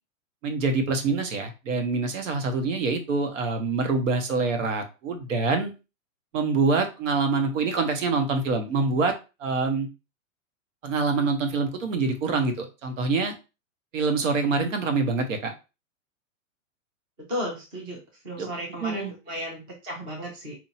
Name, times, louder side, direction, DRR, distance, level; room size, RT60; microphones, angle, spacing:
voice 1, 0.4-5.7 6.3-9.1 9.4-9.9 10.8-13.3 13.9-15.5 18.4-18.5 18.8-19.1, right 4 dB, 65° right, 6 dB, 1.2 m, -25 dB
voice 2, 17.3-20.6, equal, 10° right, -1 dB, 0.6 m, -34 dB
4.4 x 2.8 x 2.8 m, 0.29 s
supercardioid pair, 170°, 41 cm